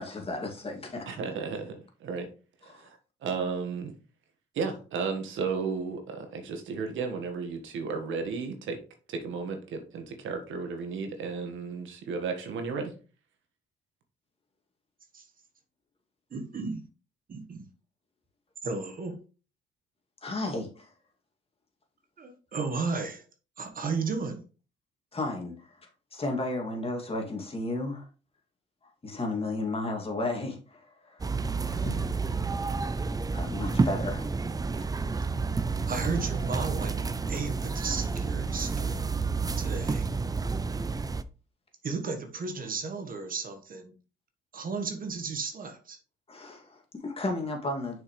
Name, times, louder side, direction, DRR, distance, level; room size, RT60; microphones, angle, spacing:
voice 1, 0.0-1.3 2.6-2.9 20.2-20.9 25.1-28.1 28.8-32.2 33.3-34.3 46.3-48.0, left 2 dB, 30° left, 2.3 m, -34 dB
voice 2, 1.1-2.3 2.7-3.0 3.2-3.9 4.5-8.8 9.1-12.9, right 5 dB, 75° right, 1.5 m, -33 dB
voice 3, 16.3-16.9 17.3-17.7 18.6-19.2 22.2-23.2 23.6-24.4 35.9-37.0 37.3-39.1 39.6-40.1 41.8-43.9 44.5-46.0, right 4 dB, 45° right, 1.3 m, -34 dB
sound 1, 31.2-41.2, right 4 dB, 20° right, 0.4 m, -30 dB
6.5 x 5.4 x 3.2 m
cardioid pair, 90°, 20 cm